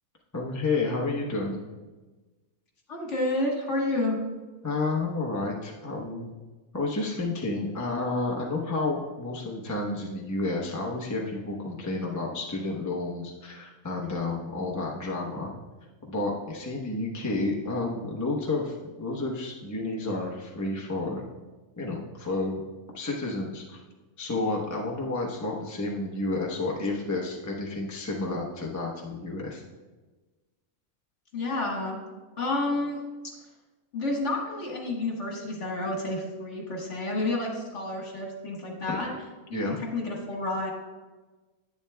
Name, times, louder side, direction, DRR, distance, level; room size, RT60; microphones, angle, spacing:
voice 1, 0.3-1.6 4.6-6.3 6.7-15.5 16.0-21.3 21.8-22.6 22.9-23.8 24.2-29.6 38.9-39.0 39.5-39.8, left 2 dB, 15° left, -2 dB, 0.7 m, -30 dB
voice 2, 2.9-4.2 31.3-32.0 32.4-33.0 33.9-39.1 39.5-40.7, left 2 dB, 55° left, -1 dB, 1.8 m, -30 dB
10.5 x 8.8 x 2.3 m, 1.2 s
omnidirectional pair, 1.5 m